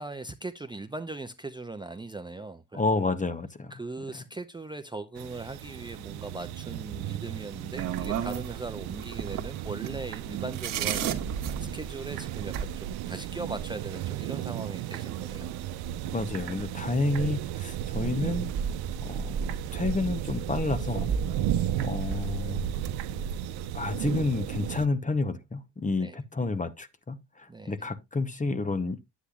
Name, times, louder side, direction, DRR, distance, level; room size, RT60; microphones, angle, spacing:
voice 1, 0.0-2.8 3.7-15.5 26.0-26.2 27.5-27.8, right 3 dB, 10° right, 0.6 m, -39 dB
voice 2, 2.7-3.7 16.1-18.5 19.0-19.3 19.7-21.1 21.8-22.6 23.7-29.0, left 3 dB, 20° left, 0.9 m, -30 dB
sound 1, 5.1-24.9, right 11 dB, 80° right, 0.7 m, -35 dB
sound 2, 7.7-12.7 14.1-14.2 14.4-14.5 14.9-15.7 16.1-16.8 17.8-17.9 18.3-22.4 22.7-23.4, right 7 dB, 60° right, 1.4 m, -34 dB
9.8 x 8.4 x 2.3 m
supercardioid pair, 75°, 37 cm